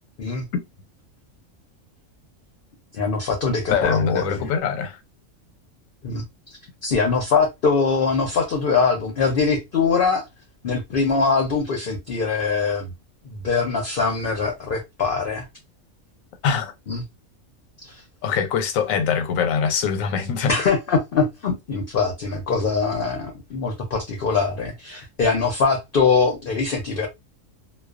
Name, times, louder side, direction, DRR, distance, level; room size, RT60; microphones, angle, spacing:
voice 1, 2.9-4.5 6.0-6.2 6.8-10.3 10.6-12.9 13.2-15.5 16.9-17.0 17.8-18.0 20.5-27.1, left 4 dB, 60° left, 0.6 m, -22 dB
voice 2, 3.7-5.0 16.4-16.7 18.2-20.5, left 6 dB, 90° left, 1.0 m, -23 dB
2.3 x 2.2 x 2.3 m
omnidirectional pair, 1.4 m